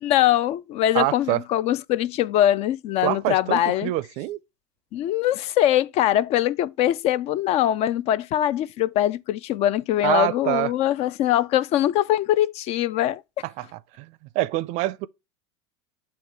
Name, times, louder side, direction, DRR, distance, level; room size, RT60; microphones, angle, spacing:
voice 1, 0.0-3.9 4.9-13.2, left 12 dB, 45° left, 0.4 m, -22 dB
voice 2, 0.9-1.4 3.0-4.4 10.0-10.7 13.6-13.7 14.0-14.1 14.3-15.1, right 17 dB, 55° right, 0.4 m, -25 dB
7.7 x 2.9 x 4.6 m
hypercardioid pair, 100°, 15 cm